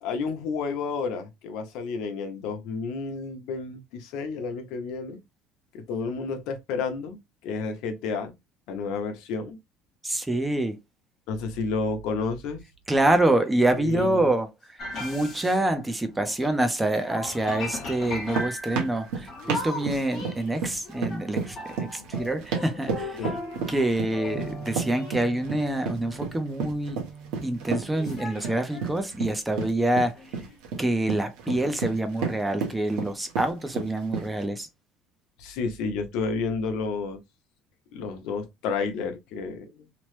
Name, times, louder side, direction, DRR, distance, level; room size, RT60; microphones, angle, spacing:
voice 1, 0.0-5.2 5.7-7.2 7.4-8.3 8.7-9.6 11.3-12.6 13.7-14.3 23.2-23.4 35.4-37.2 37.9-39.9, left 4 dB, 65° left, 0.6 m, -31 dB
voice 2, 10.0-10.8 12.9-23.2 23.7-27.0 27.4-30.1 30.8-34.7, right 1 dB, 5° right, 0.4 m, -26 dB
sound 1, 14.8-16.6 16.8-28.9 29.6-29.7 30.2-30.6, left 1 dB, 35° left, 1.0 m, -38 dB
sound 2, 18.0-34.5, right 5 dB, 75° right, 0.9 m, -32 dB
2.9 x 2.0 x 3.0 m
cardioid pair, 165°, 0 cm